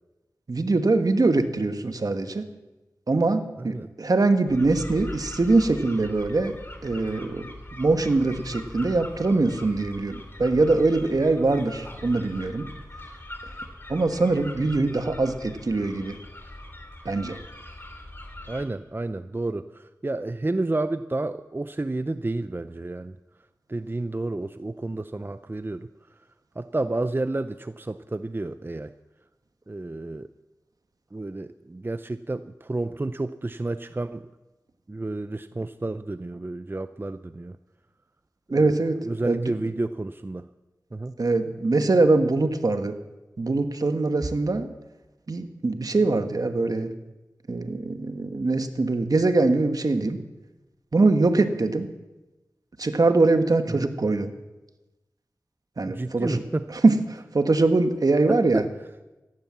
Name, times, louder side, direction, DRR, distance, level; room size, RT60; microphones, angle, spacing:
voice 1, 0.5-2.5 3.1-12.7 13.9-16.2 17.0-17.4 38.5-39.5 41.2-43.0 43.4-44.7 45.3-46.9 47.5-50.2 50.9-51.9 52.8-54.3 55.8-56.4 56.7-58.6, right 3 dB, 65° right, 8 dB, 1.4 m, -23 dB
sound 1, 4.5-18.6, left 1 dB, 35° left, 2.9 m, -41 dB
voice 2, 18.5-23.2 23.7-26.2 26.6-28.9 29.7-30.3 31.1-34.3 34.9-37.6 38.5-38.8 39.0-40.5 40.9-41.1 53.7-53.9 55.9-56.8 58.3-58.7, right 2 dB, 30° right, 12 dB, 0.5 m, -30 dB
15.5 x 11.5 x 7.4 m, 1.1 s
cardioid pair, 45°, 7 cm